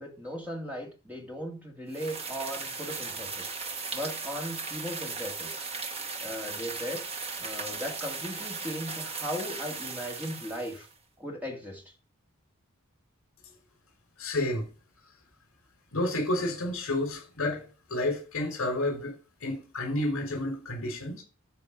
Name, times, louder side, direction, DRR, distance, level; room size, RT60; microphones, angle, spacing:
voice 1, 0.0-3.5 3.9-5.7 6.2-7.0 7.4-10.9 11.2-11.8, equal, 5° right, 2.6 m, -37 dB
sound 1, 1.9-10.9, right 4 dB, 25° right, 1.1 m, -37 dB
voice 2, 14.2-14.7 15.9-21.2, left 1 dB, 70° left, 5.5 m, -30 dB
13.5 x 5.1 x 5.2 m
head